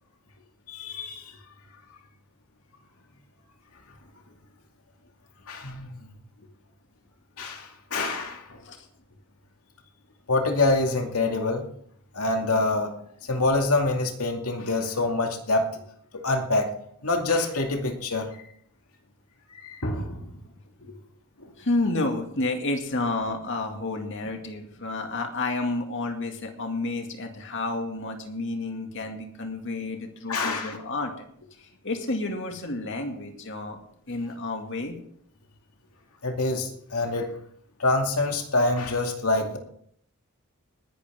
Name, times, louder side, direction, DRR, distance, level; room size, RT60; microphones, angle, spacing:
voice 1, 0.7-1.3 5.5-6.1 7.4-8.6 10.3-11.7 12.1-12.9 13.2-15.7 16.1-16.7 17.0-18.3 19.5-20.4 21.4-21.5 30.3-30.8 36.2-37.3 37.8-39.6, left 2 dB, 80° left, 3 dB, 2.4 m, -26 dB
voice 2, 21.6-31.3 31.6-33.8 34.1-35.0, left 2 dB, 60° left, 4 dB, 2.2 m, -30 dB
20.0 x 11.5 x 3.6 m, 0.66 s
head